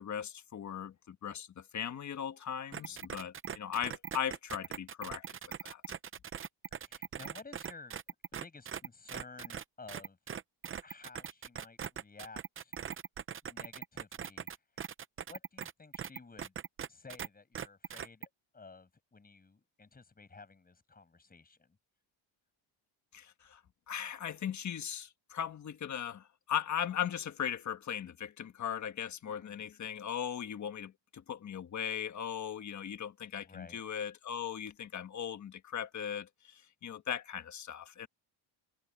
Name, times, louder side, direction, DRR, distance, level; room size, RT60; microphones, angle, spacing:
voice 1, 0.0-5.2 5.6-5.8 23.1-23.6 23.9-38.1, left 9 dB, 35° left, 1.4 m, -38 dB
voice 2, 2.7-3.1 6.8-8.0 8.3-10.2 10.8-12.8 13.4-14.5 15.2-16.5 16.9-21.8 29.2-29.7 33.4-33.8, left 4 dB, 20° left, 7.0 m, -53 dB
sound 1, 2.7-17.3 17.6-18.3, right 8 dB, 25° right, 0.6 m, -41 dB
cardioid pair, 160°, 49 cm